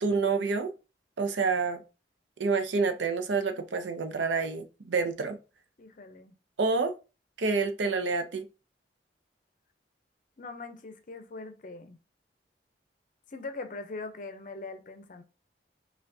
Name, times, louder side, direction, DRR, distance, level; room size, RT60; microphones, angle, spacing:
voice 1, 0.0-0.7 1.2-1.8 2.4-5.4 6.6-6.9 7.4-8.4, right 4 dB, 90° right, 0.6 m, -28 dB
voice 2, 5.8-6.3 10.4-12.0 13.3-15.2, left 3 dB, 45° left, 0.6 m, -41 dB
5.6 x 2.3 x 2.6 m
head